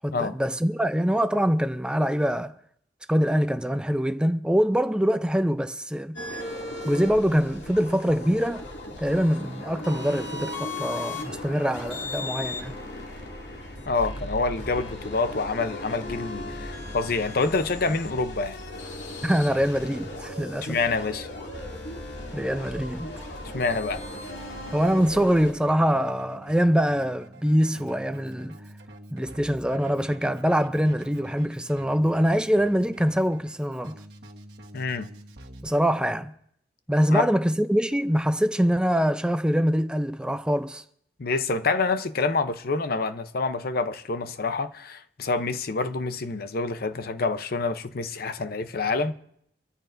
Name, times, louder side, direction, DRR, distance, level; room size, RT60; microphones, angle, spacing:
voice 1, 0.0-2.5 3.1-6.2 6.9-8.7 9.0-12.7 19.2-20.8 22.3-23.2 24.7-28.6 29.1-34.0 35.6-36.3 36.9-40.8, equal, 5° right, 0.5 m, -24 dB
sound 1, 6.1-25.5, left 1 dB, 80° left, 2.5 m, -37 dB
voice 2, 13.9-18.6 20.6-21.3 23.5-24.0 34.7-35.1 37.1-37.3 41.2-49.1, left 3 dB, 55° left, 0.7 m, -27 dB
Keyboard (musical), 23.6-35.7, right 1 dB, 65° right, 1.4 m, -47 dB
26.0 x 13.5 x 2.6 m
head